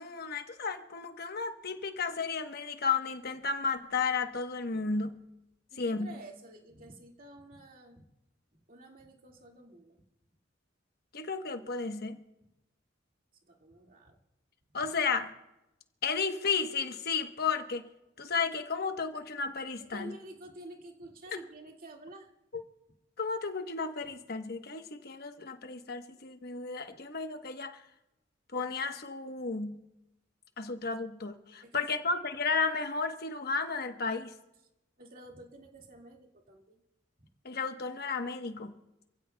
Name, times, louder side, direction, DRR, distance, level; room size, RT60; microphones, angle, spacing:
voice 1, 0.0-5.2 5.8-6.1 11.1-12.2 14.7-15.3 16.0-17.9 18.2-20.1 21.3-21.4 23.2-27.8 28.5-29.8 30.6-34.3 37.4-38.7, left 4 dB, 55° left, 1.1 m, -33 dB
voice 2, 5.7-8.1 8.7-10.0 13.5-14.2 19.8-22.3 31.6-32.1 35.0-36.8, right 1 dB, 50° right, 2.0 m, -50 dB
27.5 x 15.5 x 2.3 m
head